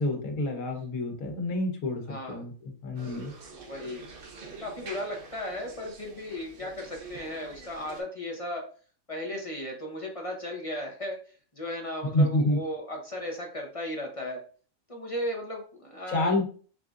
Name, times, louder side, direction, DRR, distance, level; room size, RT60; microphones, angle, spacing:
voice 1, 0.0-3.3 12.1-12.6 16.1-16.4, left 1 dB, 90° left, 3 dB, 1.5 m, -28 dB
voice 2, 2.1-2.4 3.5-4.1 4.6-8.6 9.1-11.2 11.5-14.4 14.9-16.4, left 1 dB, 30° left, 0 dB, 0.7 m, -36 dB
sound 1, 3.0-8.0, right 4 dB, 50° right, 0.8 m, -46 dB
5.0 x 3.6 x 2.5 m, 0.42 s
omnidirectional pair, 1.4 m